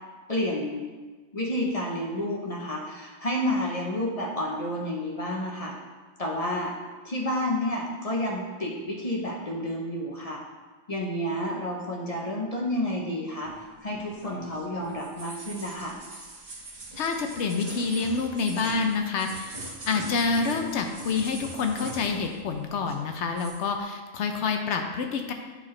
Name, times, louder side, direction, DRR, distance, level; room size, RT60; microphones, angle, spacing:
voice 1, 0.3-0.8 1.3-5.7 6.2-6.7 7.0-10.4 10.9-13.5 13.8-16.0, left 1 dB, 35° left, -2 dB, 0.6 m, -30 dB
sound 1, 13.4-22.5 22.8-23.6, right 2 dB, 35° right, 1.1 m, -42 dB
voice 2, 17.0-25.3, left 4 dB, 65° left, 4 dB, 0.8 m, -28 dB
8.9 x 4.1 x 3.2 m, 1.4 s
omnidirectional pair, 1.4 m